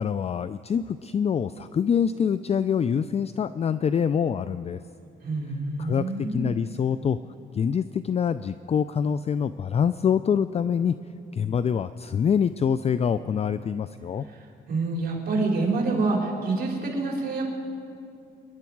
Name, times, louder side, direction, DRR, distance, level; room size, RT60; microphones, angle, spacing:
voice 1, 0.0-4.8 5.8-7.2 7.5-11.0 11.3-14.3, left 7 dB, 30° left, 14 dB, 0.4 m, -25 dB
voice 2, 5.2-6.5 14.3-17.5, right 3 dB, 50° right, -2 dB, 4.3 m, -27 dB
26.0 x 11.0 x 4.6 m, 2.5 s
cardioid pair, 90°, 20 cm